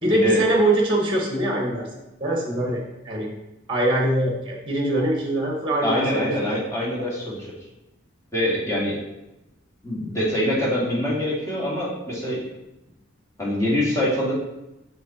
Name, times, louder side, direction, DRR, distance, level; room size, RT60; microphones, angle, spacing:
voice 1, 0.0-1.9 2.2-3.3 3.7-6.3, right 1 dB, 25° right, -1 dB, 1.2 m, -23 dB
voice 2, 5.8-7.5 8.3-9.0 9.8-12.4 13.4-14.3, left 1 dB, 15° left, -7 dB, 1.9 m, -24 dB
6.3 x 5.1 x 4.2 m, 0.95 s
head